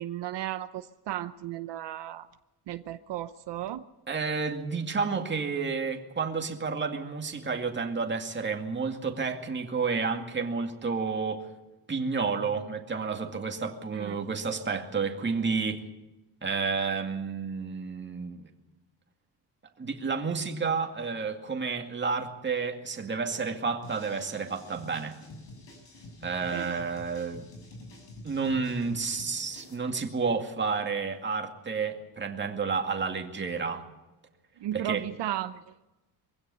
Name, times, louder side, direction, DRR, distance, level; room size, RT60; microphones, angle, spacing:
voice 1, 0.0-2.3 2.7-3.8 13.9-14.2 26.5-26.7 34.6-35.6, right 12 dB, 70° right, 0.8 m, -34 dB
voice 2, 4.1-11.5 11.9-15.8 16.4-18.5 19.8-25.2 26.2-27.5 28.2-33.8 34.7-35.1, right 5 dB, 25° right, 2.2 m, -30 dB
sound 1, 23.8-29.7, left 2 dB, 75° left, 7.5 m, -48 dB
24.0 x 16.5 x 7.0 m
cardioid pair, 160°, 43 cm